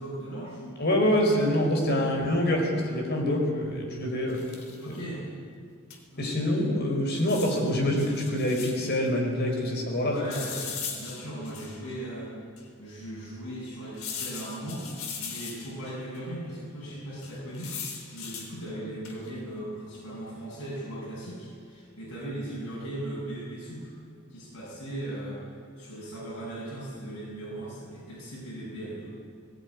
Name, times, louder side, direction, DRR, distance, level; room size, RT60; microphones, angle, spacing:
voice 1, 0.0-1.1 2.1-2.3 4.8-5.2 6.1-6.7 10.0-12.3 12.8-23.9 24.3-25.4 25.8-29.1, right 1 dB, 90° left, -6 dB, 7.6 m, -38 dB
voice 2, 0.8-4.4 4.9-5.0 6.2-10.2, left 1 dB, 50° left, 1 dB, 5.1 m, -26 dB
sound 1, 4.3-4.9 5.9-6.0 6.2-6.3 7.2-9.0 10.3-11.9 12.6-12.7 14.0-15.9 17.2-18.5 19.0-19.4, left 6 dB, 70° left, 3.5 m, -39 dB
20.0 x 18.0 x 9.8 m, 2.2 s
head